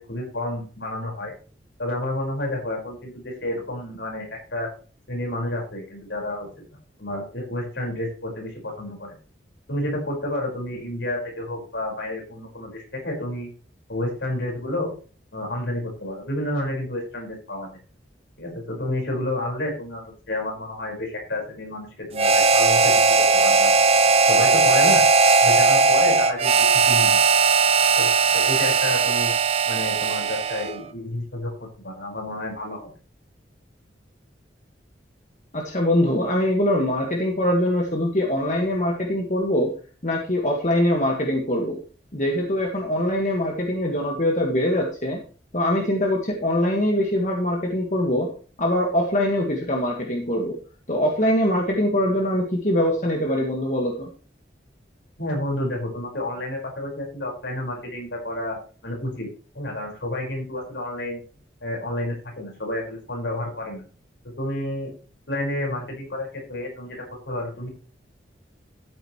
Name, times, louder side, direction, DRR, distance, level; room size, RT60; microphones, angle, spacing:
voice 1, 0.0-1.3 1.8-4.7 5.1-6.6 7.0-9.1 9.7-13.5 13.9-14.9 15.3-17.7 18.4-23.7 24.3-25.0 25.4-27.2 28.0-29.3 29.7-32.9 55.2-61.2 61.6-63.8 64.2-64.9 65.3-67.7, left 1 dB, 75° left, 0 dB, 5.1 m, -30 dB
Harmonica, 22.1-30.8, right 4 dB, 30° right, 0.6 m, -18 dB
voice 2, 35.5-39.7 40.0-41.8 42.1-45.2 45.5-48.3 48.6-50.6 50.9-54.1, left 1 dB, 40° left, 0 dB, 1.8 m, -23 dB
13.5 x 9.3 x 3.2 m, 0.37 s
head